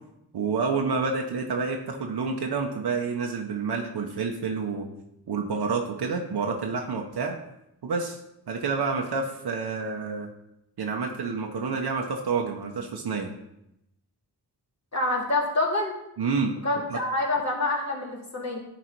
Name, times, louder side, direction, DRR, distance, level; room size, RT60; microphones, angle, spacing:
voice 1, 0.3-4.9 5.3-7.4 7.8-8.2 8.5-10.3 10.8-13.3 16.2-16.5 16.9-17.0, right 4 dB, 75° right, 1 dB, 0.9 m, -28 dB
voice 2, 14.9-15.9 16.6-18.6, left 2 dB, 45° left, -3 dB, 2.3 m, -26 dB
10.5 x 4.1 x 4.5 m, 0.83 s
cardioid pair, 75°, 40 cm